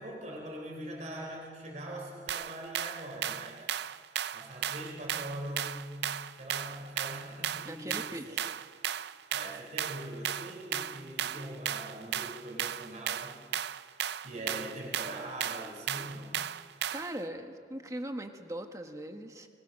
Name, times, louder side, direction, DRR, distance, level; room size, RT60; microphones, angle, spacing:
voice 1, 0.0-3.7 4.3-8.4 9.3-13.6 14.2-16.4, right 1 dB, 40° right, -1 dB, 3.6 m, -42 dB
sound 1, 2.3-17.2, right 9 dB, 65° right, 0.5 m, -36 dB
voice 2, 7.6-8.5 16.9-19.5, right 1 dB, 20° right, 5 dB, 1.4 m, -40 dB
24.0 x 21.0 x 6.5 m, 2.1 s
head